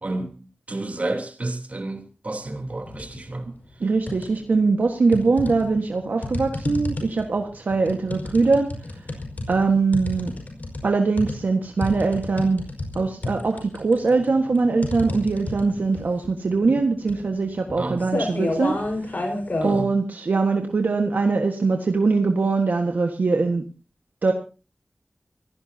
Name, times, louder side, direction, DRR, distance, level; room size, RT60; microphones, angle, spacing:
voice 1, 0.0-3.5 17.8-18.0 19.6-19.9, right 2 dB, 55° right, 3.4 m, -30 dB
sound 1, 2.9-3.2 3.6-4.6 5.1-19.8, left 2 dB, 65° left, 5.2 m, -31 dB
voice 2, 3.8-8.7 9.5-10.3 10.8-12.6 12.9-18.8 19.6-23.6 24.2-24.3, right 4 dB, 85° right, 1.5 m, -22 dB
25.5 x 17.0 x 2.8 m
wide cardioid pair, 55°, 3 cm